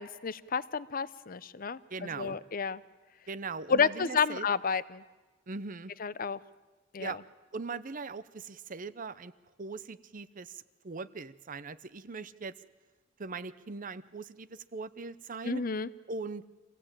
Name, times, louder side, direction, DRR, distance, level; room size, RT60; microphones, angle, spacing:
voice 1, 0.0-2.8 3.7-5.0 6.0-6.4 6.9-7.2 15.4-15.9, left 5 dB, 45° left, 17 dB, 0.6 m, -31 dB
voice 2, 1.9-2.4 3.3-4.5 5.5-5.9 7.0-7.2 7.5-9.3 9.6-12.5 13.2-15.6 16.1-16.5, right 4 dB, 40° right, 16 dB, 0.7 m, -40 dB
26.0 x 16.5 x 8.9 m, 1.3 s
head